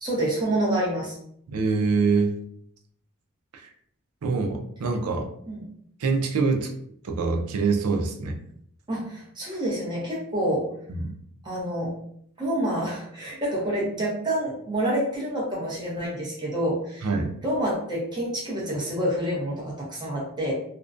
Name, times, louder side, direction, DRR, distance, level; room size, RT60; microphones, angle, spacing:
voice 1, 0.0-1.2 5.5-5.6 8.9-10.7 11.4-11.9 12.4-17.1 17.4-20.5, right 1 dB, 20° right, -5 dB, 0.7 m, -27 dB
voice 2, 1.5-2.3 3.5-3.7 4.2-5.3 6.0-6.7 7.0-8.4 10.9-11.1 17.0-17.3, right 4 dB, 80° right, 4 dB, 0.4 m, -25 dB
2.5 x 2.1 x 2.4 m, 0.68 s
head